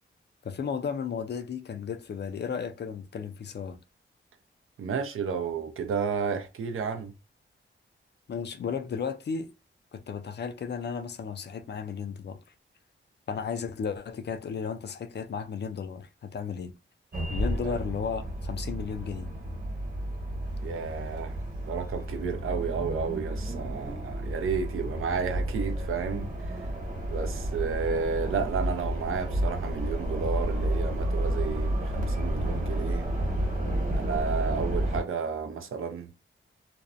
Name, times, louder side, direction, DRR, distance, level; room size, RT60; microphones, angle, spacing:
voice 1, 0.4-3.8 8.3-9.5 9.9-12.4 13.3-16.7 17.3-19.3, left 6 dB, 55° left, 0.4 m, -34 dB
voice 2, 4.8-7.1 17.6-17.7 20.6-21.4 21.7-26.3 27.1-33.1 33.9-36.1, right 6 dB, 75° right, 0.5 m, -32 dB
sound 1, 17.1-35.0, right 1 dB, 40° right, 1.1 m, -31 dB
2.5 x 2.1 x 2.5 m
wide cardioid pair, 95°, 21 cm